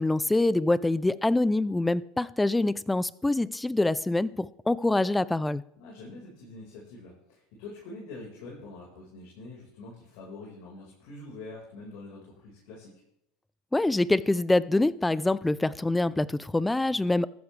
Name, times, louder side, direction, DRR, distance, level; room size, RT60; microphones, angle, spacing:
voice 1, 0.0-5.6 13.7-17.3, left 2 dB, 10° left, 19 dB, 0.5 m, -25 dB
voice 2, 5.8-12.9, left 2 dB, 70° left, -3 dB, 4.9 m, -45 dB
14.5 x 12.0 x 3.4 m, 0.79 s
hypercardioid pair, 90°, 0 cm